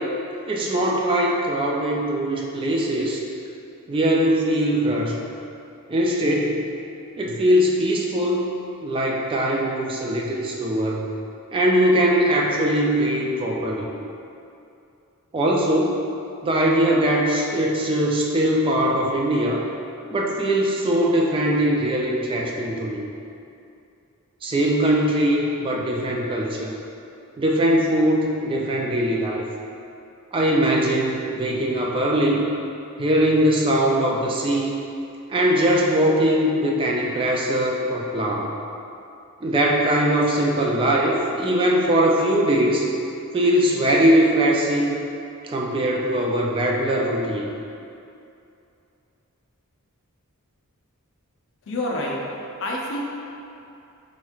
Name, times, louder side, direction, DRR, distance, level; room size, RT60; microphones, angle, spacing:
voice 1, 0.5-3.2 3.9-5.2 5.9-6.7 7.2-8.5 8.8-11.1 11.5-13.9 15.3-16.0 16.4-19.6 20.1-23.1 24.4-26.7 27.4-29.4 30.3-32.5 33.0-34.8 35.3-38.5 39.4-42.9 43.3-45.0 45.4-47.5, right 1 dB, 25° right, -2 dB, 0.3 m, -21 dB
voice 2, 51.6-53.0, left 1 dB, 60° left, -2 dB, 0.5 m, -28 dB
4.1 x 3.0 x 2.3 m, 2.7 s
head